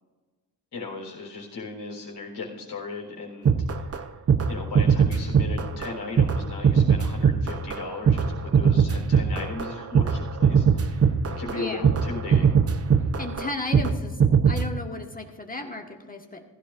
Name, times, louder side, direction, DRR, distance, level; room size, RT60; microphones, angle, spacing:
voice 1, 0.7-4.1 4.5-12.5, left 3 dB, 65° left, -1 dB, 4.0 m, -37 dB
sound 1, 3.5-4.0 4.3-4.5 4.7-5.9 6.2-13.9 14.2-14.7, right 6 dB, 35° right, 0.8 m, -20 dB
voice 2, 11.4-11.8 13.2-16.4, left 2 dB, 20° left, 3 dB, 1.4 m, -34 dB
15.5 x 13.5 x 2.6 m, 1.3 s
cardioid pair, 80°, 43 cm